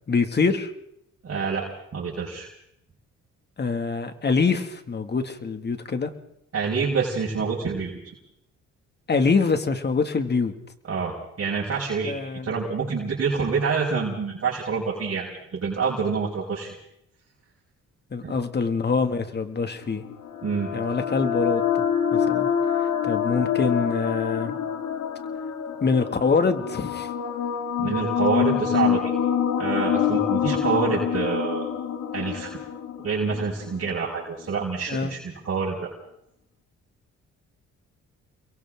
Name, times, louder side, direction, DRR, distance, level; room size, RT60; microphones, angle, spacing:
voice 1, 0.1-0.7 3.6-6.1 9.1-10.5 12.0-12.5 18.1-20.0 20.7-21.8 22.1-22.5 23.0-24.6 25.8-27.1 34.9-35.1, left 4 dB, 35° left, 7 dB, 2.3 m, -24 dB
voice 2, 1.2-1.6 1.9-2.5 6.5-8.1 10.9-12.1 12.4-16.8 18.2-18.3 20.4-20.7 27.8-29.1 29.6-31.7 32.1-32.5 33.0-35.9, right 5 dB, 50° right, -4 dB, 5.7 m, -27 dB
sound 1, 19.8-34.0, left 8 dB, 70° left, 2.7 m, -26 dB
30.0 x 22.5 x 3.9 m, 0.76 s
cardioid pair, 90°, 30 cm